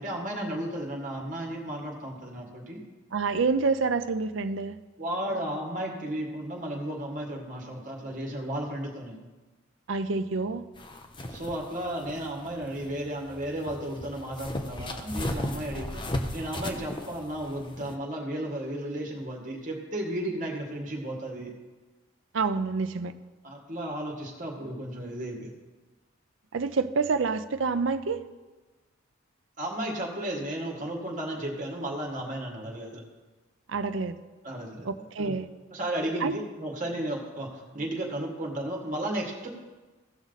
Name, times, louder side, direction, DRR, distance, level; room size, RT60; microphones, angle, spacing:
voice 1, 0.0-2.8 5.0-9.2 11.3-16.0 16.3-21.5 23.4-25.5 29.6-33.0 34.4-34.9 35.2-35.3 35.7-39.5, right 1 dB, 40° right, 0 dB, 2.0 m, -34 dB
voice 2, 3.1-4.8 9.9-10.7 22.3-23.1 26.5-28.2 33.7-34.1 34.8-35.5 36.2-36.4, right 4 dB, 65° right, 10 dB, 0.5 m, -27 dB
sound 1, 10.8-17.9, left 1 dB, 25° left, 0.7 m, -36 dB
16.5 x 6.1 x 4.1 m, 1.2 s
head